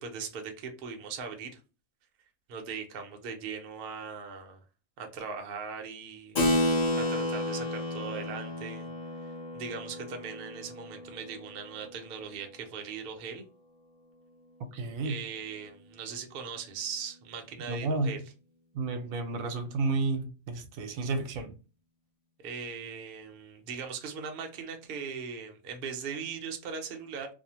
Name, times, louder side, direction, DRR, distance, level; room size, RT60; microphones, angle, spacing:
voice 1, 0.0-1.6 2.5-4.6 5.0-8.9 9.2-13.4 15.0-18.2 22.4-27.3, right 6 dB, 55° right, 0.7 m, -39 dB
Keyboard (musical), 6.4-12.4, left 1 dB, 40° left, 0.7 m, -32 dB
voice 2, 14.7-15.2 17.7-18.2 18.7-21.5, right 3 dB, 85° right, 1.0 m, -31 dB
2.6 x 2.0 x 2.8 m
omnidirectional pair, 1.4 m